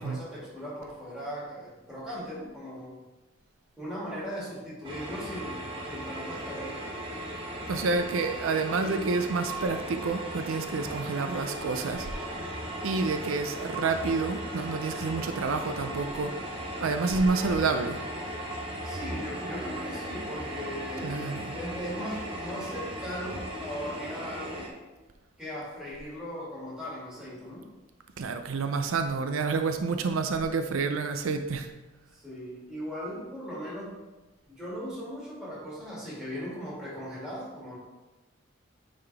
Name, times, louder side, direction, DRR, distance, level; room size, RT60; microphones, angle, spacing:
voice 1, 0.0-3.0 3.8-6.8 18.8-21.2 21.5-24.7 25.4-27.7 32.1-34.0 34.5-37.8, equal, 5° right, -9 dB, 2.3 m, -38 dB
sound 1, 4.8-24.7, right 1 dB, 25° right, 1.0 m, -37 dB
voice 2, 7.7-12.5 12.8-16.3 16.8-18.0 21.0-21.6 28.2-31.7, right 4 dB, 85° right, 8 dB, 0.4 m, -29 dB
9.3 x 3.8 x 3.4 m, 1.2 s
head